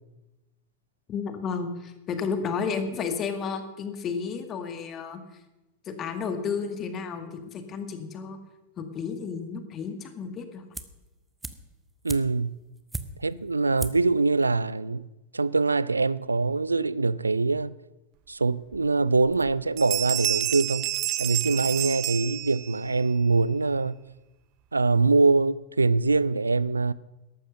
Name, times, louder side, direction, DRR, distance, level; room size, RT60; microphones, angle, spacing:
voice 1, 1.1-5.2 5.9-8.4 8.8-10.6, left 5 dB, 30° left, 1.9 m, -32 dB
sound 1, 10.7-11.1 11.4-13.4 13.8-14.2 14.4-14.5, right 2 dB, 10° right, 0.9 m, -37 dB
voice 2, 12.0-12.6 13.2-15.1 15.3-17.7 18.3-20.9 21.2-24.0 24.7-26.9, right 3 dB, 80° right, 0.4 m, -23 dB
sound 2, 18.7-18.8 19.3-19.5 19.8-22.9, right 16 dB, 40° right, 0.6 m, -29 dB
13.5 x 11.5 x 6.5 m
figure-of-eight pair, 90°, 0 cm